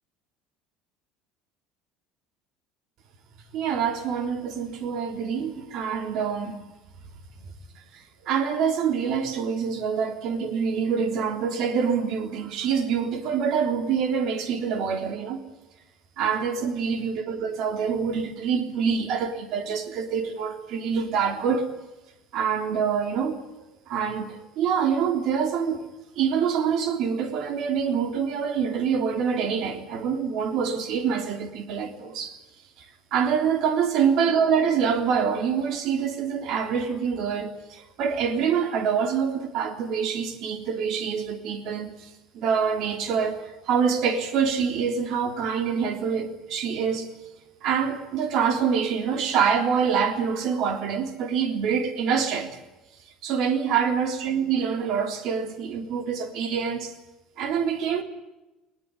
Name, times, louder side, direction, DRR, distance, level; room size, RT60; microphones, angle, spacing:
voice 1, 3.5-6.6 8.2-15.4 16.2-21.7 22.3-23.4 23.9-25.9 26.2-32.4 33.1-42.1 42.3-47.1 47.6-52.6 53.2-56.9 57.4-58.0, right 6 dB, 50° right, 3.4 m, -25 dB
20.0 x 20.0 x 9.7 m
cardioid pair, 165°, 0 cm